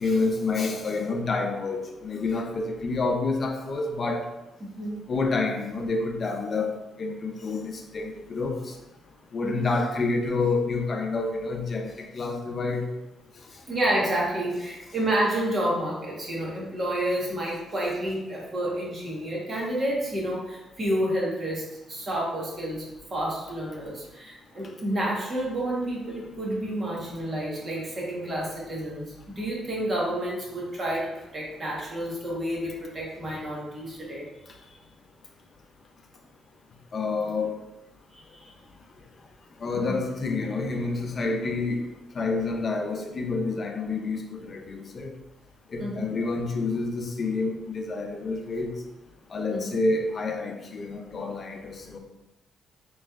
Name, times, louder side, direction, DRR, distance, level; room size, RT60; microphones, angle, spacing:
voice 1, 0.0-4.2 5.1-8.7 9.3-12.8 36.9-37.6 39.6-41.8 42.1-45.1 45.7-48.7 49.3-52.0, left 3 dB, 45° left, 3 dB, 0.6 m, -28 dB
voice 2, 4.6-5.0 9.4-9.8 13.7-22.8 23.1-34.3 38.1-38.5 39.7-40.0 45.8-46.2 49.5-49.7, right 1 dB, 40° right, -4 dB, 1.3 m, -30 dB
4.3 x 3.0 x 2.4 m, 0.99 s
cardioid pair, 90°, 0 cm